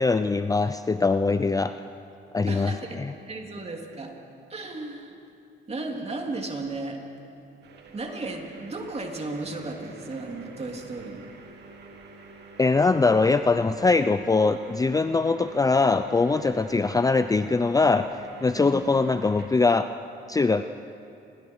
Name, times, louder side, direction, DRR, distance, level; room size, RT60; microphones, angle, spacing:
voice 1, 0.0-1.7 2.3-3.1 12.6-18.1 18.4-19.9 20.3-20.6, left 3 dB, 20° left, 10 dB, 0.5 m, -22 dB
voice 2, 2.5-3.0 3.3-4.1 4.5-5.2 5.7-7.0 7.9-11.3 18.5-18.9, right 2 dB, 30° right, 1 dB, 3.4 m, -34 dB
sound 1, 7.6-19.5, right 4 dB, 60° right, 2.7 m, -47 dB
28.5 x 23.0 x 4.8 m, 2.6 s
cardioid pair, 90°, 20 cm